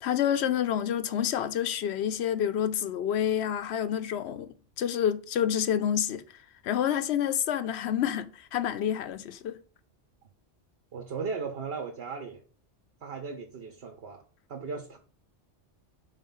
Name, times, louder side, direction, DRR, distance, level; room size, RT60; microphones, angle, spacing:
voice 1, 0.0-6.2 6.6-9.6, left 9 dB, 70° left, 0.8 m, -28 dB
voice 2, 10.9-12.4 13.0-14.2 14.5-15.0, right 5 dB, 60° right, 1.1 m, -36 dB
5.0 x 3.8 x 5.4 m
omnidirectional pair, 1.2 m